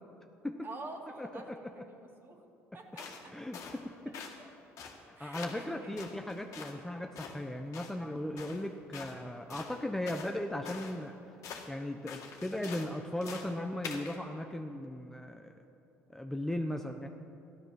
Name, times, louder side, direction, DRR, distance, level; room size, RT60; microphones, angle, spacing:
voice 1, 0.6-1.5 1.7-2.4 2.7-3.3 4.4-4.5 5.2-5.9, right 2 dB, 40° right, 1 dB, 2.5 m, -47 dB
voice 2, 1.2-1.8 3.3-4.2 5.0-11.1 11.7-15.5 16.1-17.1, left 1 dB, 5° left, 4 dB, 0.9 m, -37 dB
sound 1, 3.0-3.2 3.5-3.8 4.1-4.4 4.8-5.0 5.3-5.7 6.0-6.8 7.2-7.4 7.7-8.0 8.4-8.6 8.9-9.2 9.5-10.3 10.7-11.0 11.4-11.7 12.1-12.9 13.2-13.5 13.8-14.2, left 5 dB, 65° left, 2.0 m, -45 dB
14.5 x 12.0 x 6.0 m, 2.7 s
supercardioid pair, 75°, 6 cm